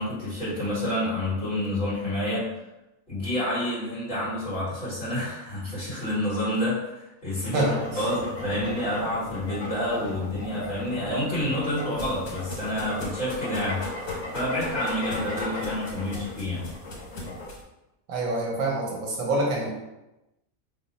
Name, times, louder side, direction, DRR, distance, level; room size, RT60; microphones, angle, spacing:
voice 1, 0.0-2.5 3.1-7.6 7.9-13.8 14.3-16.6, left 1 dB, 35° left, -10 dB, 1.5 m, -28 dB
sound 1, 7.4-17.4, left 2 dB, 70° left, 1.4 m, -36 dB
voice 2, 7.5-7.8 18.1-19.9, right 2 dB, 75° right, -2 dB, 1.2 m, -26 dB
sound 2, 7.6-13.4, left 2 dB, 35° right, 0.8 m, -42 dB
sound 3, 11.0-17.6, left 1 dB, 85° left, 1.4 m, -42 dB
3.1 x 2.1 x 4.0 m, 0.97 s
omnidirectional pair, 1.5 m